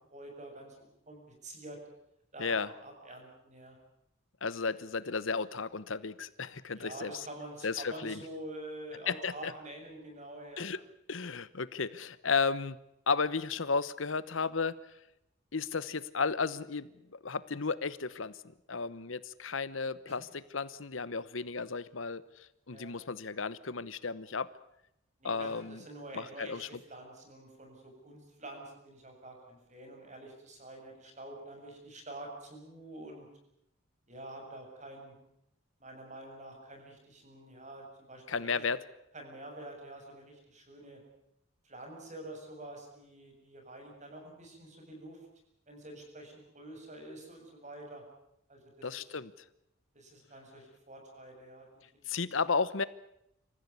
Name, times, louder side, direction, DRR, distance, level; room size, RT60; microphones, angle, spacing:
voice 1, 0.1-1.8 2.3-3.8 6.7-10.7 20.1-20.2 22.7-23.0 25.2-33.3 34.1-35.1 35.8-38.6 39.1-41.0 41.6-45.2 45.7-48.0 48.5-48.9 49.9-52.3, right 1 dB, 35° right, 2 dB, 7.7 m, -47 dB
voice 2, 4.4-7.1 7.6-8.2 9.1-9.5 10.6-10.8 11.1-12.8 13.1-14.8 15.5-18.4 18.7-22.2 22.7-24.5 25.2-25.8 26.1-26.7 38.3-38.8 48.8-49.3 52.1-52.8, left 5 dB, 80° left, 16 dB, 1.1 m, -33 dB
27.0 x 15.0 x 9.7 m, 0.79 s
head